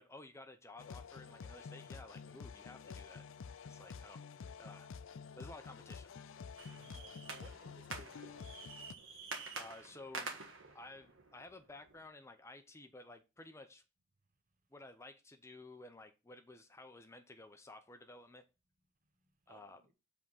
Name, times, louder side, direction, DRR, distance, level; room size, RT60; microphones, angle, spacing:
voice 1, 0.0-3.2 3.6-4.3 4.6-4.9 5.4-6.2 9.6-10.4 10.7-13.8 14.7-18.4 19.5-19.8, left 2 dB, 15° left, 0.5 m, -54 dB
sound 1, 0.8-8.9, left 5 dB, 70° left, 0.4 m, -50 dB
sound 2, 6.6-12.0, right 4 dB, 70° right, 1.4 m, -48 dB
voice 2, 6.7-8.6 19.5-19.9, right 3 dB, 40° right, 0.9 m, -61 dB
7.6 x 3.6 x 5.5 m
head